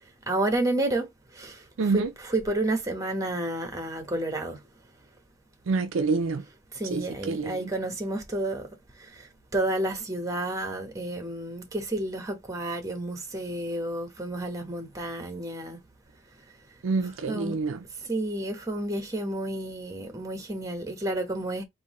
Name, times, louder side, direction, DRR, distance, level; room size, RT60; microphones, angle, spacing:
voice 1, 0.3-1.1 1.4-1.5 1.8-4.6 6.8-8.7 9.5-15.8 17.3-17.6 18.1-21.6, right 1 dB, 15° right, 1.1 m, -30 dB
voice 2, 1.8-2.1 5.7-6.4 6.9-7.7 16.8-17.8, right 4 dB, 65° right, 0.5 m, -27 dB
3.8 x 2.7 x 4.1 m
head